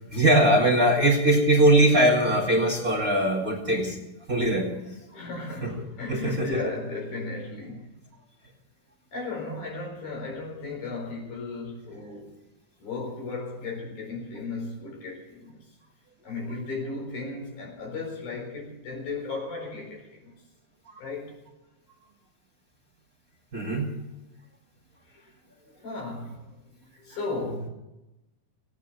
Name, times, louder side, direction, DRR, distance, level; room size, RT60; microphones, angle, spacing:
voice 1, 0.1-4.0 4.3-4.7 5.6-5.7 6.1-6.6 20.9-21.0 23.5-23.9, right 1 dB, 30° right, -2 dB, 2.2 m, -21 dB
voice 2, 4.6-7.9 9.1-12.3 12.8-15.6 16.2-20.3 21.0-21.3 25.1-25.3 25.8-27.7, left 3 dB, 80° left, 0 dB, 6.1 m, -35 dB
17.5 x 9.2 x 7.9 m, 0.96 s
omnidirectional pair, 4.1 m